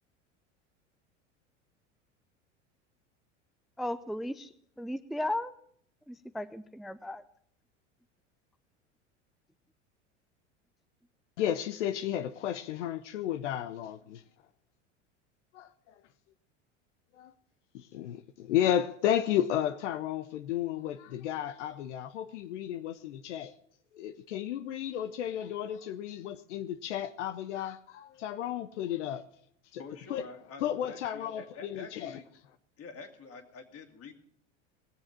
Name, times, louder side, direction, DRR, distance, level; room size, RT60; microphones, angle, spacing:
voice 1, 3.8-4.5 4.8-5.5 6.1-7.2, left 1 dB, ahead, 0.5 m, -35 dB
voice 2, 11.4-14.2 15.5-15.9 17.1-17.3 17.7-23.5 23.9-29.2 29.7-29.8 30.1-30.2 30.6-32.2, left 11 dB, 75° left, 0.8 m, -33 dB
voice 3, 29.8-32.3 32.8-34.1, left 4 dB, 40° left, 2.6 m, -47 dB
19.5 x 7.3 x 7.4 m
hypercardioid pair, 90°, 36 cm